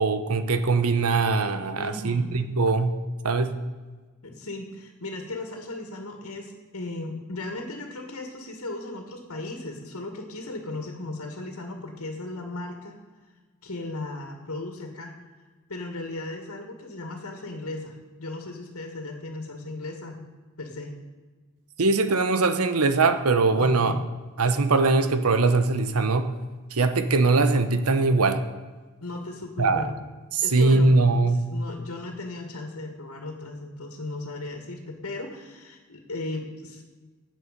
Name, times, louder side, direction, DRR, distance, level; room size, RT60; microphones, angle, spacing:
voice 1, 0.0-3.0 3.2-3.6 21.8-23.9 24.4-26.3 26.7-28.4 29.6-29.9 30.3-31.5, right 3 dB, 85° right, 10 dB, 1.0 m, -21 dB
voice 2, 1.7-2.4 4.2-13.0 13.6-15.1 15.7-20.2 20.6-20.9 23.6-24.0 29.0-29.9 30.4-31.2 31.5-36.8, left 2 dB, 75° left, 3 dB, 2.1 m, -36 dB
16.5 x 9.8 x 5.3 m, 1.4 s
head